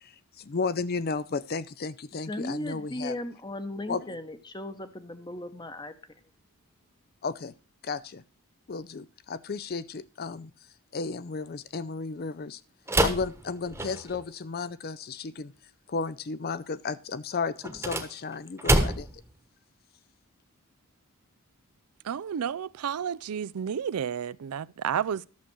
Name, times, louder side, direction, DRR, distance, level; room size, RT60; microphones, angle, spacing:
voice 1, 0.0-3.2 3.9-4.1 7.2-7.5 7.8-8.2 8.7-10.5 10.9-12.6 13.0-15.5 15.9-19.2, left 4 dB, 45° left, 0.5 m, -33 dB
voice 2, 2.3-5.9, left 1 dB, 20° left, 0.9 m, -36 dB
sound 1, 12.9-14.3 17.6-19.3, right 1 dB, 10° right, 1.1 m, -27 dB
voice 3, 22.0-25.3, right 8 dB, 85° right, 0.4 m, -31 dB
11.5 x 6.8 x 6.1 m
head